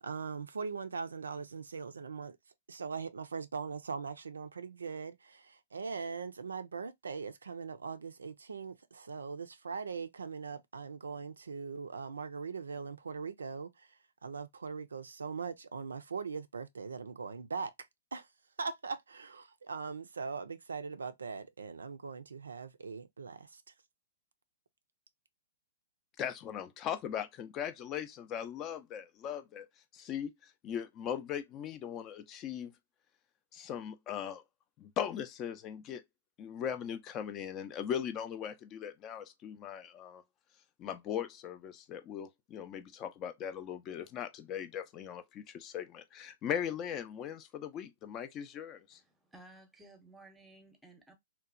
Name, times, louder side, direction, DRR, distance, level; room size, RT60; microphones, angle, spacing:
voice 1, 0.0-2.4 2.7-17.7 18.1-18.3 18.6-23.7, right 5 dB, 85° right, 0.3 m, -41 dB
voice 2, 26.2-29.7 29.9-32.7 33.5-34.4 34.8-36.0 36.4-40.2 40.8-49.0, left 9 dB, 30° left, 0.4 m, -39 dB
voice 3, 48.9-51.1, right 2 dB, 5° right, 0.7 m, -57 dB
2.9 x 2.1 x 2.4 m
hypercardioid pair, 120°, 0 cm